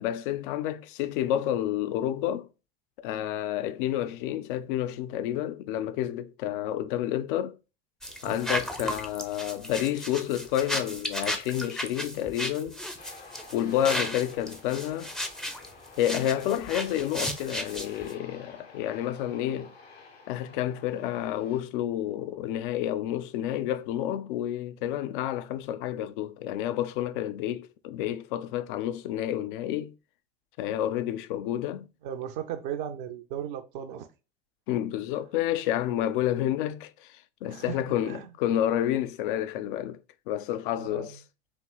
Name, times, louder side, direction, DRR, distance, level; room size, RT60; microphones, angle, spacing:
voice 1, 0.0-2.5 3.0-7.6 8.2-12.8 13.5-15.1 16.0-19.7 20.3-29.9 30.6-31.8 34.7-41.2, left 11 dB, 55° left, 0.4 m, -30 dB
sound 1, 8.0-18.1, equal, ahead, 0.5 m, -34 dB
voice 2, 8.1-8.4 32.0-34.1 37.5-37.8 38.0-38.3 40.8-41.2, right 9 dB, 50° right, 0.5 m, -36 dB
Aircraft, 13.0-21.6, left 4 dB, 80° left, 1.2 m, -51 dB
4.4 x 2.9 x 2.3 m
figure-of-eight pair, 70°, 31 cm